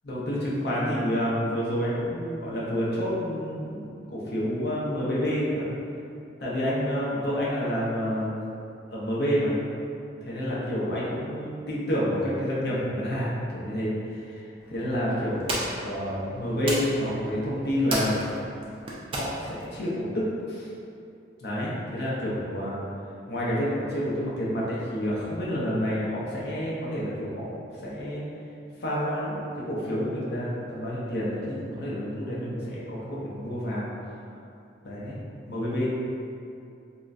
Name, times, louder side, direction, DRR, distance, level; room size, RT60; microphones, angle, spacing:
voice 1, 0.0-5.7 6.4-8.4 8.9-9.6 10.2-18.2 19.1-20.7 21.4-22.8 23.3-28.2 28.8-33.9 34.8-35.2 35.5-35.9, equal, 60° left, -7 dB, 0.6 m, -29 dB
sound 1, 14.6-19.8, right 1 dB, 30° right, 0.4 m, -35 dB
3.8 x 2.1 x 2.4 m, 2.6 s
head